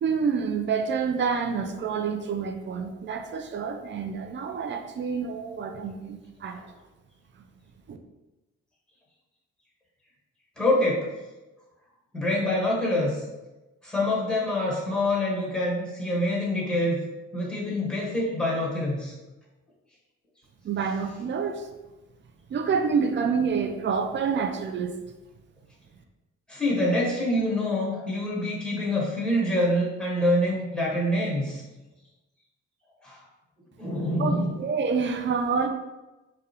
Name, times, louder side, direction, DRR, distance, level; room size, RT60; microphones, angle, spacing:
voice 1, 0.0-6.6 7.9-8.0 20.6-21.7 22.5-25.0 34.2-34.3 34.6-35.7, right 5 dB, 40° right, 6 dB, 0.4 m, -27 dB
voice 2, 10.6-11.1 12.1-13.2 13.8-17.0 17.3-19.1 26.5-31.6 33.0-33.2 33.8-34.5, left 1 dB, 5° left, -4 dB, 1.2 m, -26 dB
2.2 x 2.2 x 2.8 m, 1.1 s
hypercardioid pair, 50°, 30 cm